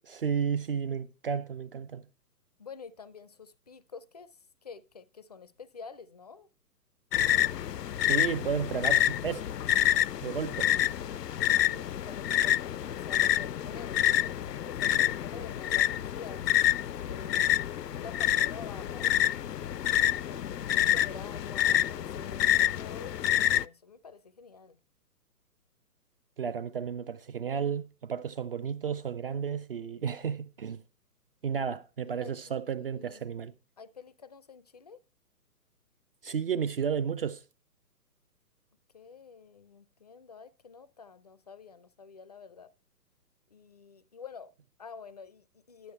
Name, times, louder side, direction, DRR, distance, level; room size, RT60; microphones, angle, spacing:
voice 1, 0.0-2.0 8.0-9.5 10.2-10.7 26.4-30.8 31.4-33.5 36.2-37.4, right 7 dB, 35° right, 0.6 m, -32 dB
voice 2, 2.6-6.5 11.4-16.5 17.0-17.6 17.9-19.1 19.6-24.8 32.0-33.3 33.8-35.0 38.9-42.7 43.5-45.9, left 5 dB, 25° left, 0.5 m, -48 dB
sound 1, 7.1-23.7, left 12 dB, 80° left, 0.6 m, -27 dB
11.5 x 8.2 x 4.3 m
figure-of-eight pair, 135°, 48 cm